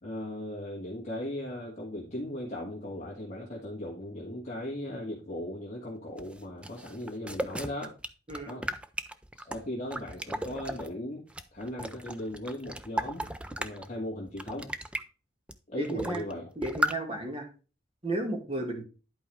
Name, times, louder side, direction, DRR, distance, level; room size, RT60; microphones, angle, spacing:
voice 1, 0.0-7.9 8.5-8.7 9.4-11.2 11.5-13.3 13.6-14.7 15.7-16.4, left 1 dB, 35° left, -5 dB, 2.2 m, -37 dB
sound 1, 6.2-10.9 11.3-13.9 14.3-15.0 15.5-15.6 15.8-16.3 16.6-17.0, right 1 dB, 5° right, 0.4 m, -35 dB
voice 2, 15.8-16.2 16.6-17.5 18.0-18.8, right 1 dB, 30° right, 3 dB, 2.1 m, -33 dB
11.0 x 4.7 x 3.4 m, 0.34 s
head